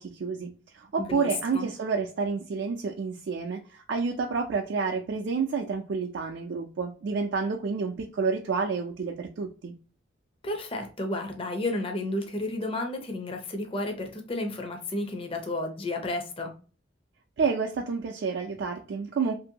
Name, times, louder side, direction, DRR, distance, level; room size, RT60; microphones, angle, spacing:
voice 1, 0.0-9.7 17.4-19.3, right 5 dB, 65° right, 2 dB, 0.4 m, -29 dB
voice 2, 1.0-1.7 10.4-16.5, left 2 dB, 30° left, 4 dB, 0.5 m, -32 dB
2.9 x 2.6 x 2.7 m, 0.37 s
head